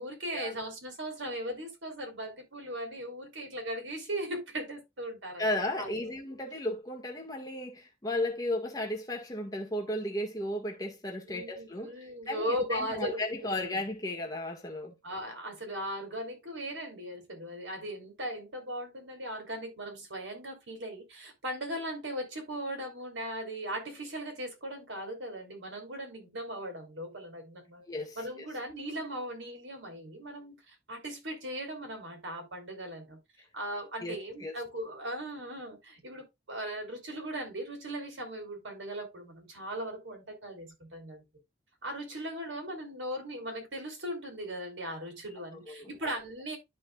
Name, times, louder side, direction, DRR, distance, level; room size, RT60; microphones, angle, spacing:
voice 1, 0.0-5.5 5.8-6.2 11.3-13.8 15.0-27.9 28.2-33.2 33.5-41.2 41.8-46.6, equal, 80° right, 3.5 m, -38 dB
voice 2, 5.4-11.9 12.3-14.9 27.9-28.5 34.0-34.2 34.4-34.5 45.7-45.9, left 1 dB, 20° left, 1.8 m, -34 dB
12.5 x 4.3 x 2.4 m
head